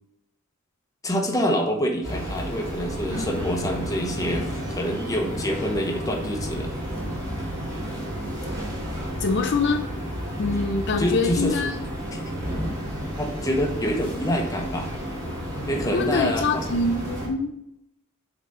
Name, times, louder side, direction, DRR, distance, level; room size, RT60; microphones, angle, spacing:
voice 1, 1.0-6.7 11.0-11.6 12.1-12.9 13.2-14.9 15.7-16.7, equal, 15° left, 2 dB, 1.0 m, -27 dB
sound 1, 2.0-17.3, equal, 15° right, 2.0 m, -31 dB
voice 2, 9.2-9.8 10.4-11.8 13.9-14.0 15.9-17.5, left 3 dB, 55° left, 4 dB, 0.6 m, -24 dB
7.4 x 4.0 x 5.4 m, 0.79 s
head